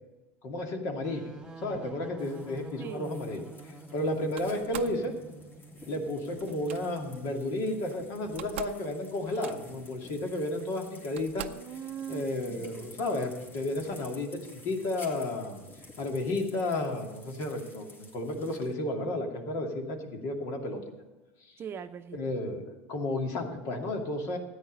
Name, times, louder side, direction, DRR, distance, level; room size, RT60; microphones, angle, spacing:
voice 1, 0.4-1.3 1.6-5.1 5.9-11.5 12.1-15.6 16.0-20.8 22.1-24.4, left 1 dB, 55° left, 3 dB, 2.5 m, -32 dB
sound 1, 1.0-6.5, right 2 dB, 10° right, 1.7 m, -47 dB
sound 2, 2.2-18.7, left 2 dB, 35° left, 3.0 m, -52 dB
voice 2, 2.8-3.1 11.5-12.7 21.6-22.2, right 8 dB, 35° right, 9 dB, 0.7 m, -41 dB
Slam, 4.4-5.0 6.4-6.8 7.9-8.0 8.2-8.8 9.1-9.8 10.6-10.7 11.2-11.7, right 12 dB, 90° right, 0.6 m, -42 dB
13.5 x 9.5 x 5.4 m, 1.1 s
hypercardioid pair, 95°, 6 cm